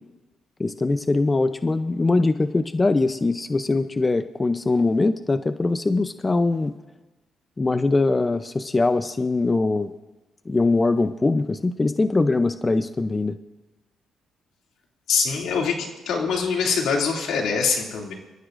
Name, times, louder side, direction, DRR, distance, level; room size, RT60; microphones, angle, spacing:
voice 1, 0.6-6.7 7.6-9.9 10.5-13.4, left 3 dB, 25° left, 10 dB, 0.6 m, -22 dB
voice 2, 15.1-18.1, left 5 dB, 80° left, 0 dB, 2.6 m, -24 dB
26.0 x 14.5 x 2.6 m, 1.1 s
cardioid pair, 90°, 0 cm